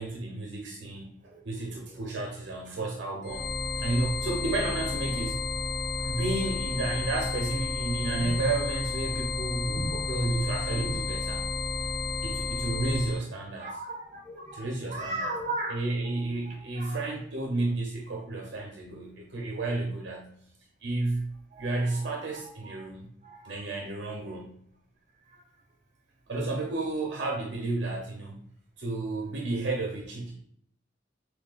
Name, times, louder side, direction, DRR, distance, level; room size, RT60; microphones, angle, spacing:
voice 1, 0.0-1.1 1.4-3.5 3.8-5.4 6.0-11.4 12.2-13.8 14.5-15.3 15.7-20.3 20.8-23.1 23.4-24.6 26.3-28.4 28.8-30.3, right 2 dB, 70° right, -1 dB, 0.6 m, -32 dB
sound 1, 3.2-13.2, left 3 dB, 55° left, 0.6 m, -32 dB
voice 2, 10.7-11.0 13.6-16.2 16.4-17.0 21.5-22.7 23.2-23.6, right 1 dB, 40° right, 1 dB, 1.0 m, -38 dB
6.0 x 2.2 x 2.4 m, 0.67 s
head